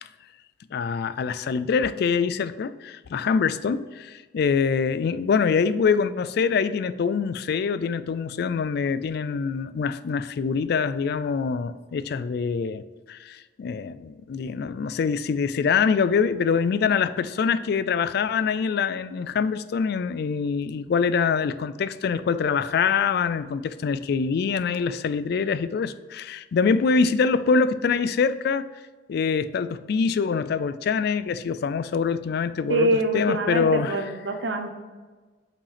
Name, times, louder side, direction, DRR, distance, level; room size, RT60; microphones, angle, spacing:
voice 1, 0.7-12.8 13.1-28.7 29.1-34.0, left 5 dB, 60° left, 0.3 m, -24 dB
voice 2, 32.7-34.7, right 1 dB, 90° right, 0.9 m, -24 dB
5.7 x 5.1 x 5.0 m
head